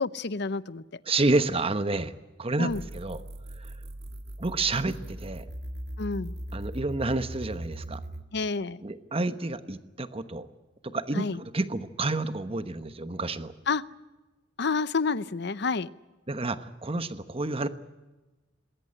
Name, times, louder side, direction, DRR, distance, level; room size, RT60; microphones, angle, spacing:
voice 1, 0.0-1.0 2.6-2.8 6.0-6.3 8.3-8.8 11.1-11.4 13.7-13.8 14.6-15.9, left 4 dB, 60° left, 17 dB, 0.7 m, -29 dB
voice 2, 1.1-2.1 2.4-3.2 3.6-3.7 4.4-5.4 6.5-8.0 8.8-10.5 10.8-13.5 16.3-17.7, right 2 dB, 30° right, 11 dB, 1.1 m, -29 dB
sound 1, 2.7-8.3, right 1 dB, 60° right, 1.8 m, -39 dB
20.5 x 18.5 x 10.0 m, 1.2 s
head